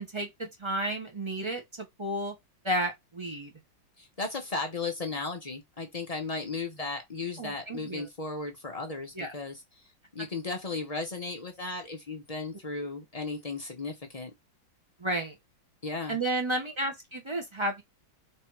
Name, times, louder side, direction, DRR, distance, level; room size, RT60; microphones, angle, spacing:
voice 1, 0.0-2.3 2.6-3.5 7.4-8.1 9.1-9.3 15.0-15.3 16.1-17.8, right 1 dB, 30° right, 0.5 m, -32 dB
voice 2, 4.0-9.6 10.1-14.3 15.8-16.2, left 3 dB, 70° left, 0.3 m, -35 dB
3.3 x 2.9 x 4.6 m
omnidirectional pair, 2.0 m